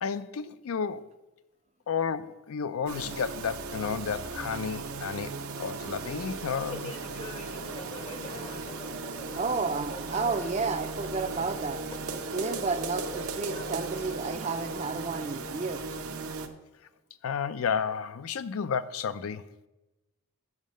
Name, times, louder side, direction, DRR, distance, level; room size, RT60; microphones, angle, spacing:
voice 1, 0.0-1.1 1.9-6.9 17.2-19.5, left 6 dB, 80° left, 0.4 m, -32 dB
sound 1, 2.9-16.5, right 4 dB, 85° right, 0.8 m, -37 dB
sound 2, 6.7-15.3, left 2 dB, 25° left, 0.6 m, -45 dB
voice 2, 9.3-11.8 12.3-15.8, right 4 dB, 30° right, 0.4 m, -31 dB
7.3 x 6.4 x 6.2 m
head